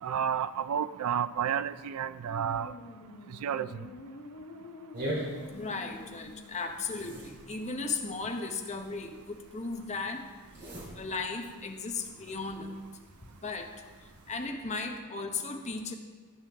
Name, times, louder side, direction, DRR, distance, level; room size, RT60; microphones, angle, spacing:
voice 1, 0.0-2.7 3.4-3.9, right 8 dB, 75° right, 15 dB, 0.4 m, -31 dB
sound 1, 2.3-7.1, left 2 dB, 65° left, 1.1 m, -48 dB
sound 2, 4.9-14.5, right 1 dB, 50° right, 3.1 m, -44 dB
voice 2, 5.5-10.2 11.0-12.8 13.4-13.7 14.3-15.9, left 4 dB, 30° left, 4 dB, 0.9 m, -36 dB
15.0 x 9.0 x 3.5 m, 1.5 s
head